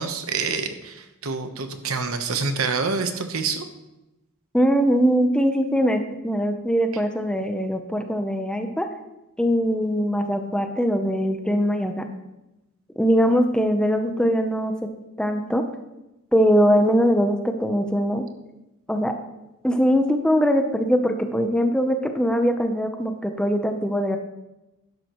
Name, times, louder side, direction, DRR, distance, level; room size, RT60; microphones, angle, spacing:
voice 1, 0.0-3.6, right 4 dB, 75° right, 7 dB, 1.0 m, -27 dB
voice 2, 4.5-8.9 9.4-12.0 13.0-14.9 15.2-15.6 16.3-18.2 18.9-19.1 19.6-24.2, equal, 5° left, 5 dB, 0.7 m, -21 dB
12.0 x 10.5 x 3.1 m, 0.95 s
head